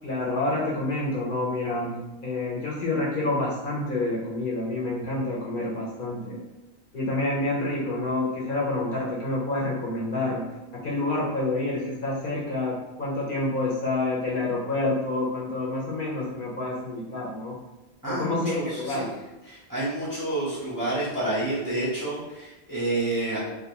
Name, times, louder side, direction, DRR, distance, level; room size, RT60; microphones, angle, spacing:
voice 1, 0.0-2.0 2.2-6.4 6.9-10.4 10.7-17.6 18.1-19.1, left 2 dB, 55° left, -5 dB, 0.8 m, -28 dB
voice 2, 18.0-19.1 19.4-23.4, right 2 dB, 25° right, -9 dB, 0.5 m, -29 dB
2.3 x 2.2 x 2.8 m, 1.0 s
omnidirectional pair, 1.1 m